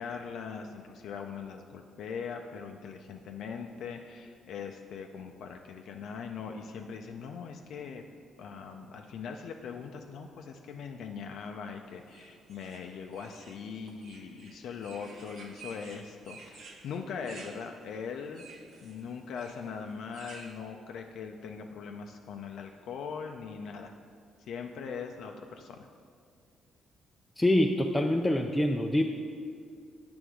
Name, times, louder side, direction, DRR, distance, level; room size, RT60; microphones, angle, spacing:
voice 1, 0.0-8.0 8.4-18.4 18.8-23.9 24.4-25.9, left 6 dB, 75° left, 3 dB, 0.4 m, -41 dB
sound 1, 12.1-20.5, right 4 dB, 70° right, 0.9 m, -51 dB
voice 2, 27.4-29.0, left 1 dB, 10° left, 2 dB, 0.4 m, -25 dB
7.9 x 3.4 x 6.1 m, 2.2 s
cardioid pair, 90°, 0 cm